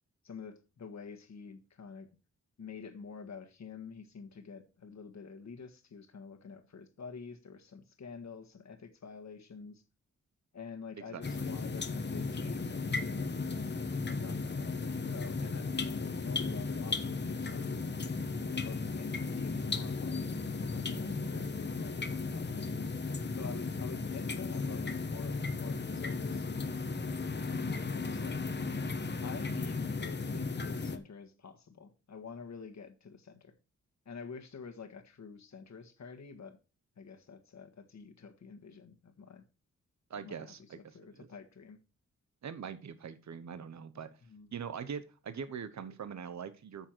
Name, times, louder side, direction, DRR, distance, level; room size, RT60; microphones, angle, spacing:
voice 1, 0.2-2.1 2.6-9.8 10.5-13.3 14.1-17.9 18.5-20.3 20.6-22.7 23.3-28.4 29.2-33.5 34.0-36.6 37.0-39.5 40.1-41.8 44.2-44.5, left 5 dB, 65° left, 1.6 m, -48 dB
voice 2, 11.1-11.5 40.1-41.3 42.4-44.1 44.5-46.9, right 7 dB, 65° right, 1.0 m, -42 dB
sound 1, 11.2-31.0, left 4 dB, 35° left, 1.0 m, -35 dB
9.1 x 6.6 x 4.5 m
wide cardioid pair, 95°, 30 cm